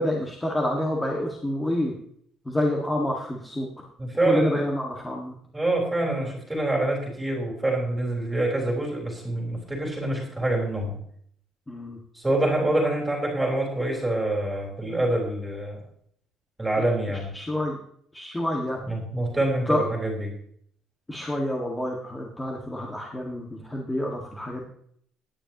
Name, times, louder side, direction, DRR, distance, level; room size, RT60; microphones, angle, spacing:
voice 1, 0.0-1.9 2.5-3.7 4.2-5.3 11.7-12.0 17.3-17.8 18.1-18.8 19.7-19.8 21.1-24.6, left 1 dB, 10° left, -2 dB, 1.7 m, -28 dB
voice 2, 4.0-4.7 5.5-11.0 12.1-15.8 16.6-17.3 18.9-20.3, right 1 dB, 5° right, -1 dB, 3.7 m, -26 dB
18.0 x 10.0 x 3.0 m, 0.65 s
cardioid pair, 175°, 0 cm